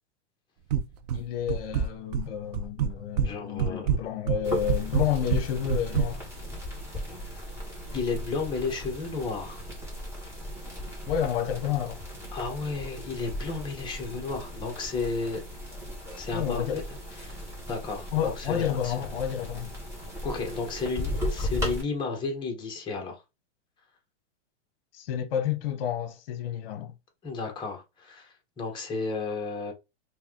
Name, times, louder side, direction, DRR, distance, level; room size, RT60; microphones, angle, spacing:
sound 1, 0.7-1.2 1.5-2.3 2.5-3.3 3.6-6.1, right 7 dB, 40° right, 0.4 m, -26 dB
voice 1, 1.1-6.2 11.1-12.0 16.3-16.8 18.1-19.7 24.9-26.9, left 9 dB, 60° left, 0.8 m, -30 dB
voice 2, 3.2-3.9 7.9-9.6 12.3-15.4 16.2-16.8 17.2-17.4 17.7-18.9 20.2-23.2 27.2-29.7, left 4 dB, 15° left, 0.9 m, -33 dB
sound 2, 4.4-21.8, equal, 10° right, 1.5 m, -37 dB
3.3 x 2.7 x 3.6 m
supercardioid pair, 155°, 33 cm